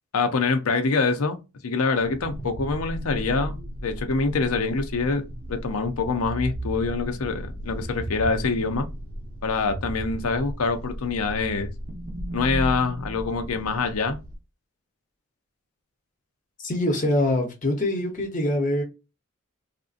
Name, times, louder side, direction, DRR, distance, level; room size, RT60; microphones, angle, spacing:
voice 1, 0.1-1.4 1.6-8.9 9.4-11.7 12.3-14.2, left 4 dB, 90° left, 0.6 m, -25 dB
sound 1, 2.0-14.4, equal, 40° right, 0.8 m, -35 dB
voice 2, 16.6-18.8, left 1 dB, 35° left, 0.8 m, -24 dB
3.5 x 2.5 x 2.4 m
head